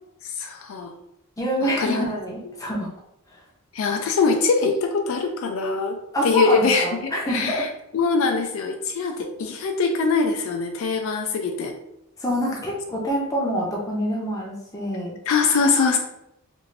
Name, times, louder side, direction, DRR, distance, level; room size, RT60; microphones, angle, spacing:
voice 1, 0.2-0.9 1.6-2.0 2.4-2.5 3.7-7.7 7.9-11.7 15.3-16.0, left 4 dB, 65° left, 4 dB, 0.3 m, -23 dB
voice 2, 1.4-2.9 6.1-7.6 12.2-15.1, equal, 15° left, -3 dB, 0.6 m, -26 dB
2.5 x 2.5 x 3.1 m, 0.82 s
head